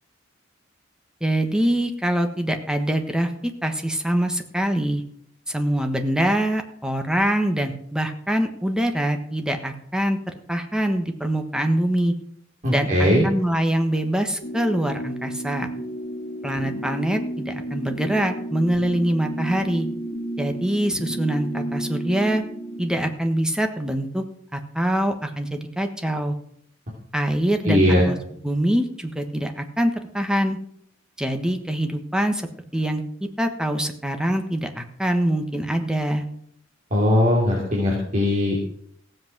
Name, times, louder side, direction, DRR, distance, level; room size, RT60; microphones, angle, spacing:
voice 1, 1.2-5.0 5.5-10.2 10.5-12.1 12.7-15.7 16.4-19.9 20.4-22.4 22.8-24.2 24.5-26.4 27.1-28.2 28.4-30.6 31.2-32.5 32.7-33.0 33.4-36.2, right 1 dB, 5° right, 5 dB, 1.3 m, -24 dB
voice 2, 12.6-13.3 27.6-28.1 36.9-38.5, left 1 dB, 40° right, -3 dB, 3.1 m, -19 dB
sound 1, 14.4-23.1, right 1 dB, 35° left, 2.1 m, -32 dB
16.0 x 7.9 x 6.1 m, 0.67 s
head